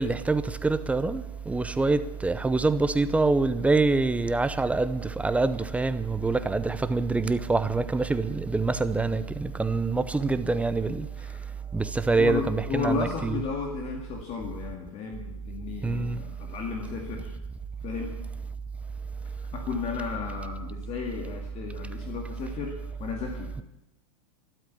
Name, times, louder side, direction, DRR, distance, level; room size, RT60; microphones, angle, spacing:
voice 1, 0.0-11.1 11.7-13.4 15.8-16.2, right 3 dB, 5° right, 0.7 m, -25 dB
voice 2, 12.2-17.3 17.8-18.2 19.3-23.6, left 5 dB, 35° left, 2.2 m, -34 dB
13.0 x 12.5 x 8.5 m
hypercardioid pair, 115°, 20 cm